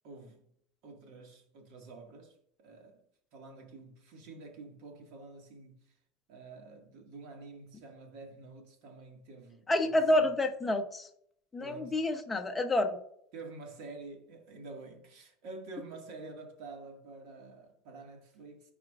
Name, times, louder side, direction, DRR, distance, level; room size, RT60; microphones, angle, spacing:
voice 1, 0.0-0.5 0.8-3.0 3.3-5.9 6.3-10.3 11.6-12.0 13.3-18.7, right 3 dB, 55° right, 1.9 m, -48 dB
voice 2, 9.7-11.1 11.5-13.0, left 1 dB, 10° left, 0.8 m, -28 dB
13.5 x 4.9 x 2.5 m
supercardioid pair, 160°, 0 cm